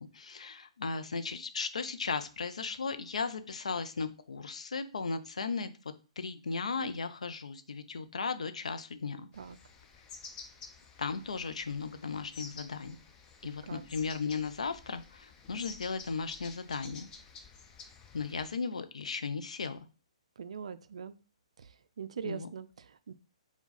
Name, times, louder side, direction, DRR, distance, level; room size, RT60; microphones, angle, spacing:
voice 1, 0.0-5.7 6.2-9.3 11.0-13.0 13.4-17.1 18.1-19.8 22.2-22.5, left 4 dB, 70° left, 10 dB, 0.5 m, -36 dB
Spotted Flycatcher, 9.3-18.5, left 5 dB, 20° left, 0.6 m, -51 dB
voice 2, 20.4-21.1 21.6-23.1, right 7 dB, 60° right, 13 dB, 0.3 m, -42 dB
4.5 x 2.3 x 3.9 m, 0.34 s
figure-of-eight pair, 125°, 4 cm